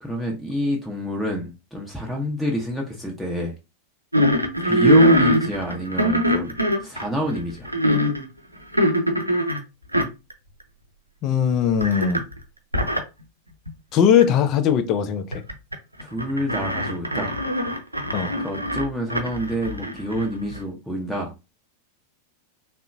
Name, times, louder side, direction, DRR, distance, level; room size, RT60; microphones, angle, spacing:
voice 1, 0.0-3.5 4.6-7.7 16.0-17.3 18.4-21.3, equal, ahead, 0.7 m, -27 dB
sound 1, 4.1-8.2 8.7-9.6 9.9-10.3 10.6-10.7 11.8-12.4 12.7-13.0 13.7-13.8 14.2-14.3 15.3-15.7 16.0-20.6, equal, 85° right, 0.5 m, -21 dB
voice 2, 11.2-12.2 13.9-15.3 18.1-18.4, left 8 dB, 35° left, 0.4 m, -19 dB
3.7 x 2.1 x 2.5 m
figure-of-eight pair, 90°, 0 cm